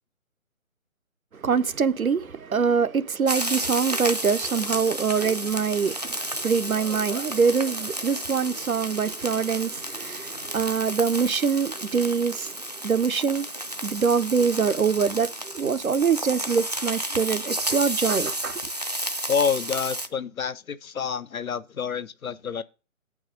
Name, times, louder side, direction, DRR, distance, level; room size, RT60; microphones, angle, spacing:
voice 1, 1.3-12.6 12.8-13.5 13.8-18.6, right 6 dB, 85° right, 0.9 m, -24 dB
sound 1, 3.3-20.1, right 1 dB, 30° right, 0.4 m, -32 dB
voice 2, 19.3-22.6, left 7 dB, 85° left, 0.8 m, -28 dB
7.8 x 4.8 x 6.5 m
figure-of-eight pair, 155°, 41 cm